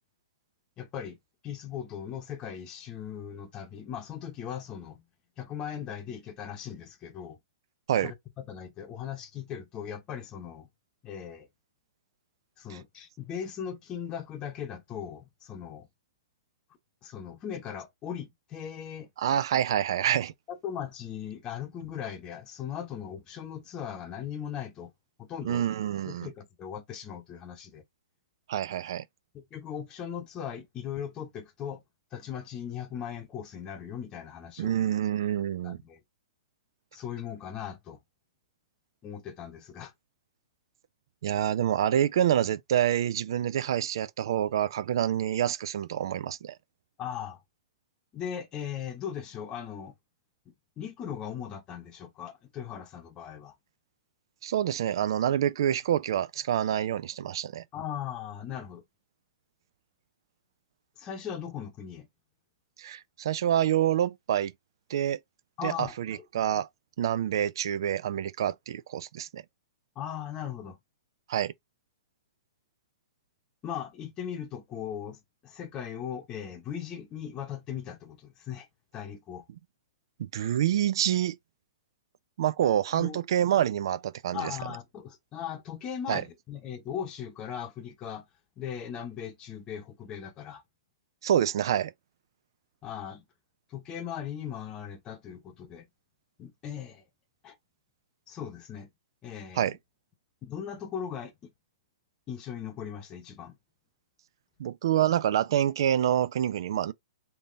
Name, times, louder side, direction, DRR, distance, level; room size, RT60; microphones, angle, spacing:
voice 1, 0.8-1.2 1.4-5.0 5.4-7.4 8.0-10.7 11.0-11.5 12.6-15.9 17.0-19.1 20.5-24.9 25.2-25.7 26.1-27.8 29.3-31.8 32.1-34.8 35.6-36.0 36.9-38.0 39.0-39.9 47.0-47.4 48.1-49.9 50.8-53.6 57.7-58.8 61.0-62.1 65.6-66.2 70.0-70.8 73.6-78.7 78.9-79.4 82.9-83.2 84.3-88.3 88.6-90.6 92.8-93.2 93.7-95.9 96.4-97.0 97.4-97.6 98.3-98.9 99.2-99.7 100.4-101.5 102.3-103.6, left 9 dB, 25° left, 0.8 m, -38 dB
voice 2, 19.2-20.3 25.4-26.3 28.5-29.0 34.6-35.8 41.2-46.5 54.4-57.6 62.8-64.5 64.9-65.2 65.6-66.7 67.0-69.4 71.3-71.5 80.2-81.4 82.4-84.5 86.1-86.2 91.2-91.9 99.6-99.8 104.6-106.9, right 10 dB, 60° right, 0.3 m, -27 dB
3.6 x 2.7 x 2.6 m
figure-of-eight pair, 115°, 3 cm